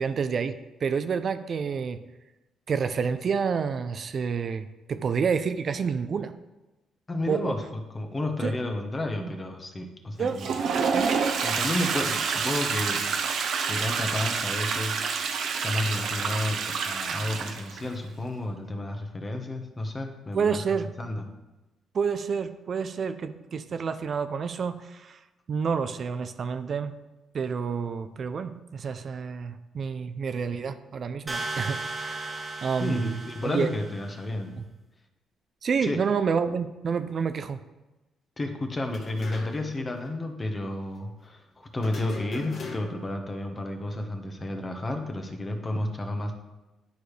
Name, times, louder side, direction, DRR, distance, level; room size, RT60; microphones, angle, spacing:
voice 1, 0.0-2.0 2.7-6.3 7.3-7.5 8.4-8.5 9.2-9.3 10.2-10.4 10.9-11.2 20.3-20.9 21.9-25.2 25.5-27.0 27.3-33.7 34.6-34.7 35.6-37.6, right 6 dB, 50° right, 10 dB, 0.4 m, -29 dB
voice 2, 7.1-10.6 11.4-13.1 13.6-15.3 15.6-20.6 21.0-21.2 32.8-34.6 35.8-36.0 38.4-46.3, left 1 dB, 25° left, 4 dB, 1.1 m, -31 dB
Toilet flush, 10.2-17.9, right 5 dB, 70° right, 0.8 m, -28 dB
sound 1, 31.3-34.2, right 2 dB, 25° right, 1.2 m, -36 dB
sound 2, 38.9-39.8 40.0-40.1 41.8-43.1, left 3 dB, 55° left, 1.3 m, -40 dB
10.5 x 4.8 x 3.2 m, 1.1 s
cardioid pair, 90°, 0 cm